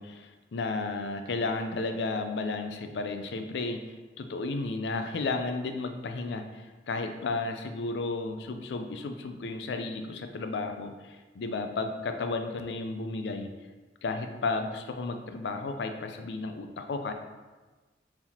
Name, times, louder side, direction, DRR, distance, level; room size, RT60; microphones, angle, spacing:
voice 1, 0.0-13.5 14.0-17.1, left 3 dB, 70° left, 6 dB, 0.4 m, -33 dB
4.6 x 3.5 x 2.8 m, 1.3 s
head